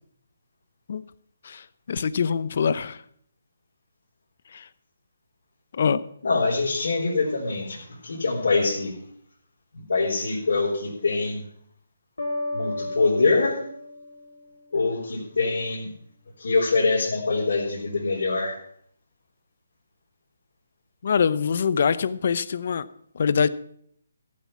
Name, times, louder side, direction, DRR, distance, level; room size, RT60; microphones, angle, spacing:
voice 1, 1.9-3.0 4.5-4.6 5.7-6.0 21.0-22.8 23.2-23.5, left 6 dB, 55° left, 0.8 m, -23 dB
voice 2, 6.2-9.0 9.7-11.4 12.5-13.6 14.7-15.9 16.4-18.6, left 3 dB, 70° left, 4.3 m, -24 dB
sound 1, 12.2-15.0, left 2 dB, 90° left, 4.0 m, -34 dB
14.5 x 8.7 x 6.0 m
hypercardioid pair, 155°, 0 cm